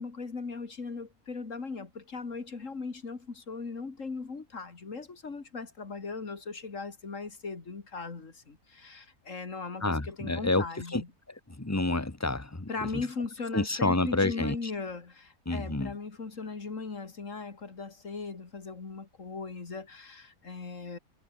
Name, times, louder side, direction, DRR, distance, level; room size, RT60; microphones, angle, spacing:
voice 1, 0.0-11.1 12.7-21.0, left 4 dB, 55° left, 2.7 m, -38 dB
voice 2, 9.8-10.6 10.9-11.0 11.5-13.1 13.5-14.7 15.4-15.9, left 2 dB, 10° left, 1.4 m, -29 dB
omnidirectional pair, 1.6 m